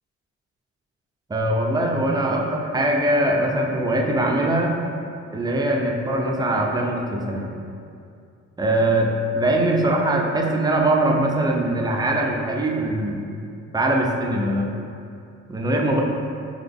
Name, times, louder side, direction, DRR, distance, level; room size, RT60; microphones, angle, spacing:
voice 1, 1.3-4.7 5.3-7.5 8.6-13.3 13.7-14.7 15.5-16.0, right 1 dB, 15° right, 0 dB, 0.5 m, -22 dB
4.0 x 3.6 x 3.5 m, 2.5 s
cardioid pair, 90°, 30 cm